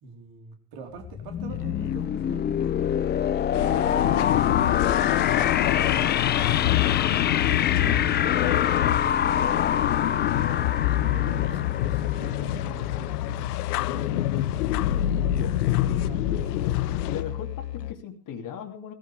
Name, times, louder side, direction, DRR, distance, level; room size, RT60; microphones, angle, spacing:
voice 1, 0.0-2.6 3.6-4.9 5.5-6.7 7.2-10.2 11.0-13.5 13.9-16.5, right 4 dB, 50° right, 4.0 m, -43 dB
sound 1, 1.0-12.7, left 9 dB, 20° left, 0.6 m, -26 dB
Musical instrument, 1.5-17.9, left 13 dB, 90° left, 0.6 m, -36 dB
sound 2, 3.5-17.2, left 14 dB, 70° left, 0.9 m, -26 dB
voice 2, 15.4-16.8 17.1-18.9, left 8 dB, 40° left, 2.6 m, -39 dB
19.0 x 14.5 x 3.4 m
hypercardioid pair, 75°, 47 cm